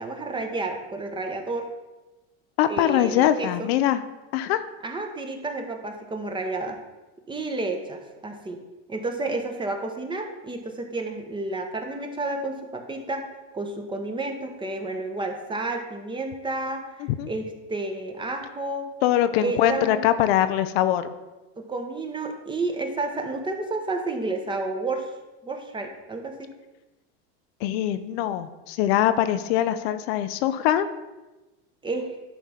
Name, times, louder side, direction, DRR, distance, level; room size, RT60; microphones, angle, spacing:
voice 1, 0.0-1.7 2.7-3.7 4.8-6.8 7.3-8.6 8.9-13.3 13.5-18.9 19.4-20.0 21.6-25.1 25.4-26.5 31.8-32.1, right 2 dB, 15° right, 4 dB, 1.1 m, -31 dB
voice 2, 2.6-4.0 4.3-4.6 17.2-17.3 19.0-21.1 27.6-30.9, left 11 dB, 70° left, 11 dB, 0.6 m, -22 dB
10.0 x 3.4 x 5.7 m, 1.1 s
supercardioid pair, 115°, 32 cm